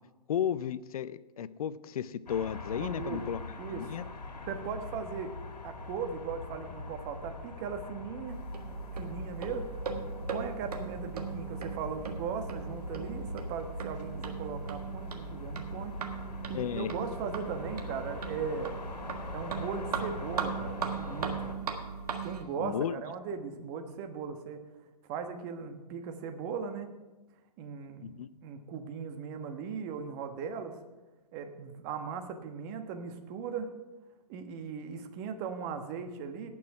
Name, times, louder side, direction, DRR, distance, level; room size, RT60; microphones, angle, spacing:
voice 1, 0.3-3.4 3.7-4.0 16.5-16.9 22.6-23.0 28.0-28.3, left 9 dB, 60° left, 17 dB, 0.6 m, -34 dB
sound 1, 2.3-21.5, left 3 dB, 80° left, 1.9 m, -43 dB
voice 2, 2.7-3.3 3.6-4.0 4.4-5.3 5.6-8.4 8.9-9.6 10.3-16.1 16.5-18.7 19.3-21.5 22.2-24.6 25.1-26.9 27.6-30.8 31.3-33.7 34.3-36.5, right 6 dB, 35° right, 6 dB, 1.2 m, -38 dB
sound 2, 8.3-22.4, right 6 dB, 65° right, 1.6 m, -38 dB
18.0 x 6.2 x 4.7 m, 1.1 s
hypercardioid pair, 125°, 21 cm